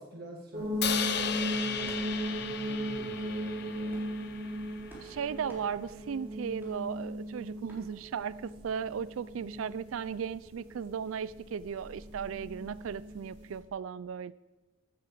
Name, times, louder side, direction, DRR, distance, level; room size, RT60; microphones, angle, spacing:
voice 1, 0.0-3.9, equal, 50° right, 0 dB, 1.7 m, -48 dB
sound 1, 0.5-13.6, right 1 dB, 25° right, 5.2 m, -38 dB
Crash cymbal, 0.8-5.0, left 8 dB, 55° left, 0.8 m, -35 dB
sound 2, 0.8-1.0 1.8-2.1 2.9-3.1 3.8-4.2 4.9-5.1 5.5-5.6 6.6-6.7 7.7-7.8, right 1 dB, 10° right, 3.7 m, -52 dB
voice 2, 5.0-14.3, right 7 dB, 75° right, 17 dB, 0.4 m, -36 dB
12.5 x 8.6 x 7.8 m, 1.2 s
head